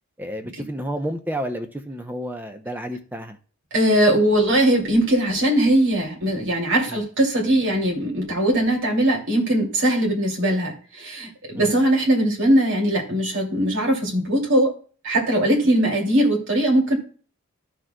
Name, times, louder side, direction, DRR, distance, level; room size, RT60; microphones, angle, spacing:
voice 1, 0.2-3.4 6.9-7.0 11.5-11.8, equal, 10° right, 0.6 m, -31 dB
voice 2, 3.7-14.7 15.0-17.0, right 1 dB, 60° right, 2.6 m, -20 dB
15.0 x 6.2 x 2.2 m
head